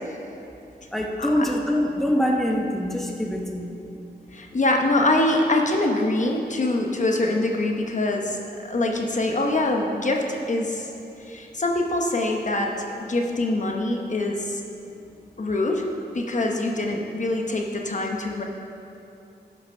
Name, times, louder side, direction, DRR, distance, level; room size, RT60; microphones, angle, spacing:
voice 1, 0.9-3.7, equal, ahead, 0 dB, 0.9 m, -24 dB
voice 2, 4.3-10.9 11.2-14.6 15.4-15.9 16.1-18.4, left 2 dB, 45° left, 1 dB, 0.9 m, -24 dB
12.5 x 5.9 x 5.4 m, 2.8 s
wide cardioid pair, 105°, 18 cm